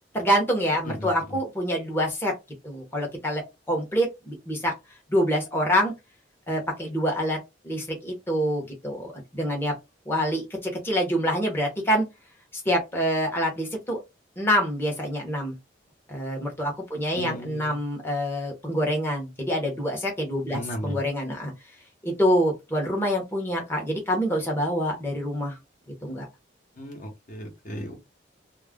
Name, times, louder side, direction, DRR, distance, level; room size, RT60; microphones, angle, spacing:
voice 1, 0.1-2.3 2.6-4.7 5.1-5.9 6.5-7.4 7.6-9.7 10.1-12.1 12.5-14.0 14.4-15.6 16.1-21.5 22.0-25.6 26.0-26.3, equal, 15° left, 0.8 m, -26 dB
voice 2, 17.2-17.8 20.5-21.0 26.8-28.0, equal, 45° left, 0.9 m, -35 dB
2.3 x 2.0 x 3.5 m
head